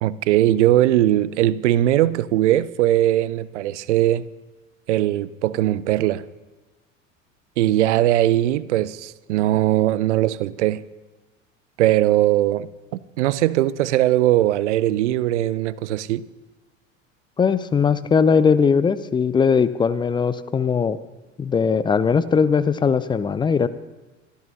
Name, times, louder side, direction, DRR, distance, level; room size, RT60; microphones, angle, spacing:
voice 1, 0.0-4.2 4.9-6.2 7.6-10.8 11.8-12.7 13.2-16.2, right 14 dB, 65° right, 0.6 m, -20 dB
voice 2, 17.4-21.0 21.4-23.7, left 6 dB, 10° left, 0.4 m, -19 dB
25.0 x 13.0 x 2.8 m
figure-of-eight pair, 75°, 39 cm